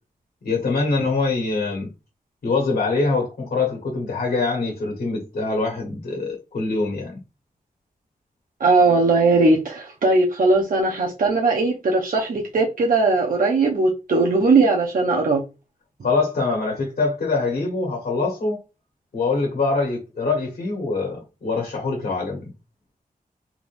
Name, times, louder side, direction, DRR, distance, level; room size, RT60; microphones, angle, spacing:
voice 1, 0.4-1.9 2.4-7.1 16.0-18.6 19.1-22.5, left 3 dB, 90° left, 1.4 m, -24 dB
voice 2, 8.6-15.4, right 3 dB, 70° right, 0.8 m, -19 dB
3.7 x 3.4 x 2.6 m
wide cardioid pair, 105°, 15 cm